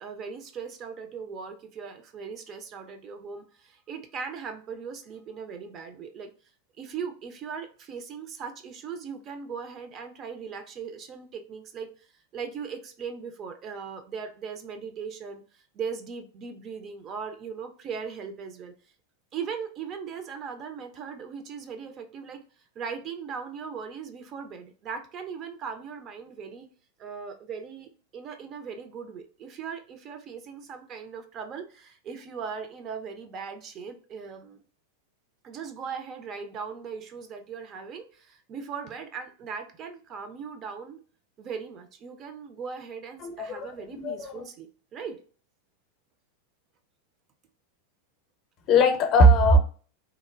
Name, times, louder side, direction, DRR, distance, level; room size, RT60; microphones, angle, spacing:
voice 1, 0.0-6.3 6.8-12.1 12.3-18.7 19.3-22.4 22.8-26.7 27.0-34.6 35.4-41.0 41.4-45.2, right 6 dB, 35° right, 0.4 m, -39 dB
voice 2, 43.2-44.5 48.7-49.6, equal, 40° left, 0.5 m, -20 dB
2.9 x 2.1 x 2.3 m
figure-of-eight pair, 90°, 0 cm